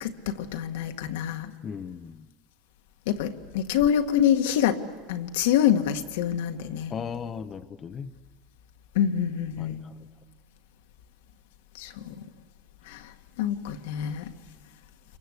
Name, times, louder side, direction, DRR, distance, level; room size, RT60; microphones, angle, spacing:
voice 1, 0.0-1.5 3.1-4.8 5.1-6.9 9.0-9.8 11.8-12.1 12.9-13.1 13.4-14.3, left 10 dB, 80° left, 5 dB, 1.8 m, -26 dB
voice 2, 1.6-2.3 6.9-8.1 9.6-9.9, left 7 dB, 25° left, 8 dB, 0.8 m, -37 dB
28.0 x 23.0 x 8.2 m, 1.4 s
supercardioid pair, 140°, 0 cm